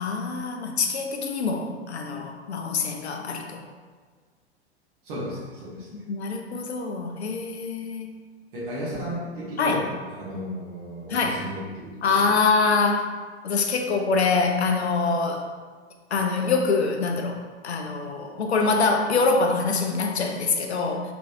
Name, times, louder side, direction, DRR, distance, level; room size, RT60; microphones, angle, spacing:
voice 1, 0.0-3.6 6.1-8.1 9.6-9.8 11.1-11.4 12.0-13.0 13.4-15.4 16.1-17.4 17.6-21.0, left 4 dB, 80° left, 3 dB, 0.5 m, -24 dB
voice 2, 5.0-5.9 8.5-12.4, equal, 50° right, -7 dB, 1.0 m, -34 dB
3.1 x 3.1 x 2.6 m, 1.5 s
figure-of-eight pair, 90°, 33 cm